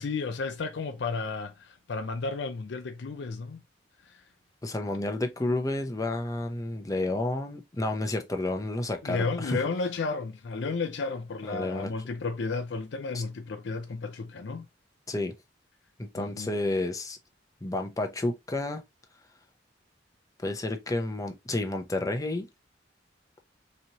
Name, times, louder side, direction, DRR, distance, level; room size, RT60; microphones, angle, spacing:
voice 1, 0.0-3.6 4.1-4.2 9.0-14.7 16.1-16.5, left 4 dB, 65° left, 0.5 m, -33 dB
voice 2, 4.6-9.6 11.5-11.9 13.1-13.2 15.1-15.3 16.0-17.2 17.6-18.8 20.4-22.5, left 2 dB, 20° left, 0.6 m, -30 dB
4.1 x 3.1 x 2.8 m
head